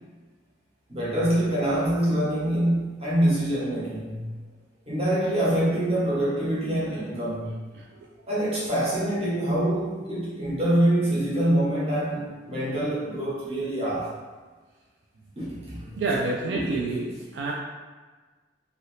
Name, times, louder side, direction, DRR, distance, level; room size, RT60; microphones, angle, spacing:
voice 1, 0.9-4.2 4.9-7.6 8.3-14.1 15.4-15.9 16.5-16.7, right 1 dB, 35° right, -7 dB, 1.0 m, -25 dB
voice 2, 7.7-8.3 15.9-17.5, right 3 dB, 90° right, -2 dB, 0.4 m, -29 dB
2.8 x 2.7 x 3.1 m, 1.3 s
head